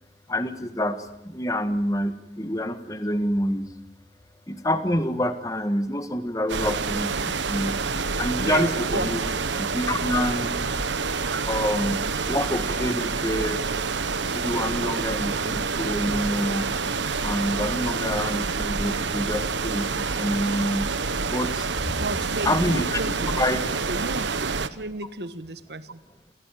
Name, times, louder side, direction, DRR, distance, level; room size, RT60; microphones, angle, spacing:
voice 1, 0.3-1.0 1.2-3.7 4.5-7.1 7.5-7.8 8.2-9.2 9.6-10.5 11.5-13.6 14.3-16.7 17.2-20.9 21.3-21.9 22.4-23.6, left 1 dB, 20° left, 9 dB, 1.6 m, -27 dB
sound 1, 6.5-24.7, right 4 dB, 85° right, 1.2 m, -27 dB
voice 2, 8.9-9.2 11.3-11.4 21.9-23.4 23.9-24.4 24.7-26.0, right 2 dB, 65° right, 13 dB, 1.4 m, -32 dB
28.5 x 16.5 x 9.2 m, 0.89 s
head